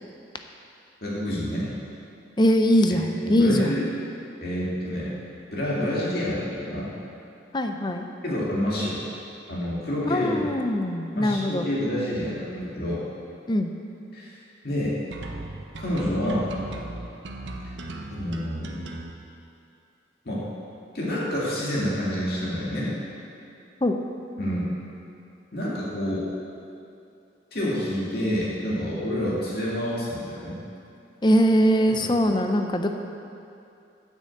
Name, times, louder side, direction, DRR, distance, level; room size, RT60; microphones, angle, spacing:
voice 1, 1.0-1.7 2.9-3.8 4.4-5.1 5.5-6.9 8.2-9.0 9.5-10.4 11.2-13.0 14.1-14.4 14.6-14.9 15.8-16.5 18.1-18.8 20.3-20.4 20.9-22.9 24.4-24.7 25.5-26.3 27.5-30.6 31.9-32.0, equal, 55° left, -7 dB, 2.2 m, -28 dB
voice 2, 2.4-3.8 7.5-8.1 10.1-11.7 13.5-13.7 23.8-24.0 31.2-32.9, equal, 25° left, 5 dB, 0.5 m, -21 dB
sound 1, 15.1-19.1, right 2 dB, 80° right, 0.9 m, -37 dB
8.9 x 6.5 x 7.7 m, 2.6 s
head